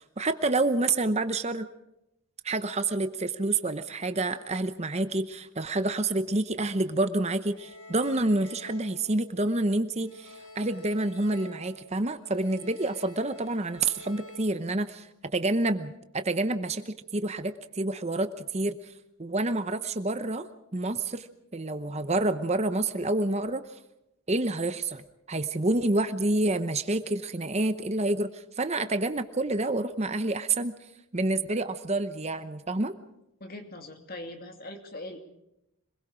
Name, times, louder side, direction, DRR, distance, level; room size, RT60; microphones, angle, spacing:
voice 1, 0.0-1.7 2.4-18.9 19.2-20.5 20.7-21.3 21.5-23.6 24.3-30.7 31.1-32.9, right 2 dB, 30° right, 10 dB, 0.8 m, -28 dB
sound 1, 7.6-9.7 10.0-14.4, left 1 dB, 75° left, 4.0 m, -49 dB
voice 2, 33.4-35.2, left 1 dB, 40° left, 5 dB, 2.6 m, -41 dB
26.5 x 21.5 x 5.0 m, 0.86 s
head